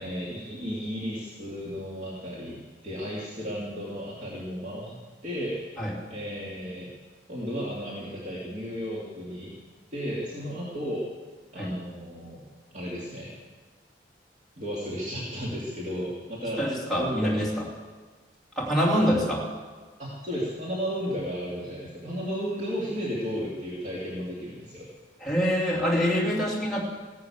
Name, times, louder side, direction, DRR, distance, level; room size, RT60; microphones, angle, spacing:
voice 1, 0.0-5.0 5.2-6.9 7.3-9.5 9.9-11.0 11.5-12.4 12.7-13.3 14.6-16.7 17.0-17.5 18.9-19.5 20.0-24.9, equal, 40° right, -6 dB, 2.7 m, -34 dB
voice 2, 16.6-17.7 18.6-19.5 25.2-26.8, equal, ahead, -6 dB, 2.8 m, -25 dB
16.0 x 11.5 x 7.3 m, 1.4 s
head